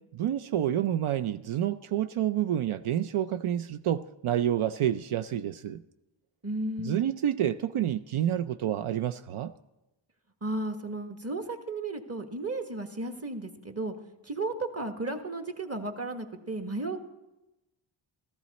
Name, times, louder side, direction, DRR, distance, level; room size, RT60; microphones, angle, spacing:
voice 1, 0.1-5.8 6.8-9.5, right 11 dB, 80° right, 0.6 m, -28 dB
voice 2, 6.4-7.0 10.4-13.9 14.2-17.0, right 2 dB, 30° right, 1.5 m, -34 dB
15.0 x 14.0 x 4.1 m
wide cardioid pair, 70°, 49 cm